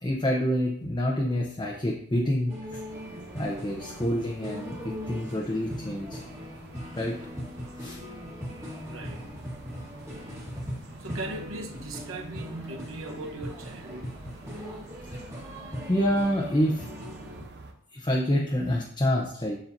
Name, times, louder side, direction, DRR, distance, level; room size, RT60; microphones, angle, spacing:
voice 1, 0.0-2.5 3.3-6.2 7.0-7.2 7.8-8.0 15.9-16.9 17.9-19.6, equal, 20° left, -1 dB, 0.8 m, -27 dB
sound 1, 2.5-17.4, equal, 15° right, 1.5 m, -40 dB
sound 2, 2.9-17.7, right 2 dB, 50° right, 0.8 m, -48 dB
voice 2, 8.5-9.3 11.0-14.1 15.7-15.8, right 2 dB, 65° right, 3 dB, 1.0 m, -39 dB
7.4 x 7.2 x 2.7 m, 0.65 s
head